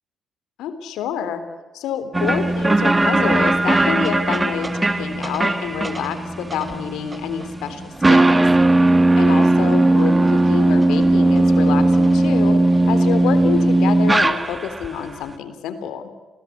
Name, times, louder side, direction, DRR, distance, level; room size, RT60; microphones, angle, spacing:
voice 1, 0.6-1.4 1.7-8.5 9.2-12.6 12.9-16.1, left 8 dB, 85° left, 10 dB, 3.3 m, -27 dB
sound 1, 2.1-14.9, right 2 dB, 15° right, 1.9 m, -17 dB
27.0 x 18.5 x 8.5 m, 1.3 s
cardioid pair, 90°, 0 cm